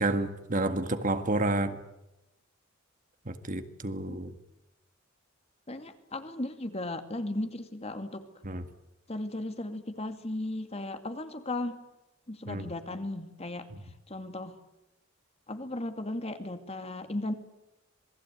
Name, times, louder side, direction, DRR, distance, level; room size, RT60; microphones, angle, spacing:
voice 1, 0.0-1.8 3.3-4.4 8.4-8.6 12.5-12.7, right 2 dB, 40° right, 9 dB, 1.9 m, -30 dB
voice 2, 5.7-8.2 9.1-11.8 12.3-13.7 14.1-14.6 15.5-17.3, left 1 dB, 30° left, 8 dB, 2.3 m, -36 dB
27.0 x 20.5 x 9.3 m, 0.93 s
head